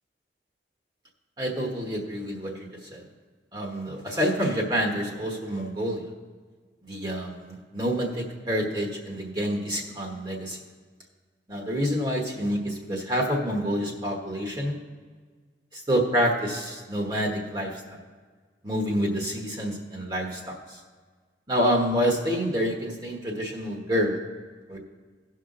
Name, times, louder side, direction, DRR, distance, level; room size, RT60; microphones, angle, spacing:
voice 1, 1.4-3.0 3.5-6.1 6.8-10.6 11.5-14.8 15.7-18.0 18.6-20.8 21.5-24.2 24.7-24.8, equal, 25° right, 0 dB, 1.2 m, -28 dB
17.0 x 5.7 x 3.8 m, 1.5 s
head